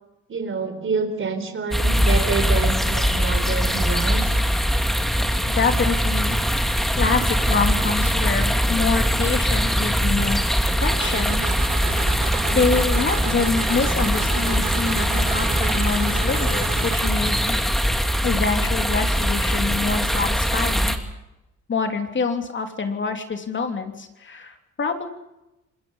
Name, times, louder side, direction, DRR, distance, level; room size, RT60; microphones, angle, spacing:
voice 1, 0.3-4.3, right 5 dB, 45° right, 8 dB, 4.1 m, -27 dB
sound 1, 1.7-21.0, equal, ahead, 2.6 m, -22 dB
voice 2, 5.4-6.4 7.0-10.4 10.8-11.5 12.5-17.7 18.2-21.0 21.7-25.1, left 4 dB, 40° left, 5 dB, 3.2 m, -26 dB
sound 2, 10.9-17.1, right 9 dB, 65° right, 2.0 m, -32 dB
27.0 x 21.0 x 5.6 m, 0.95 s
cardioid pair, 90°, 30 cm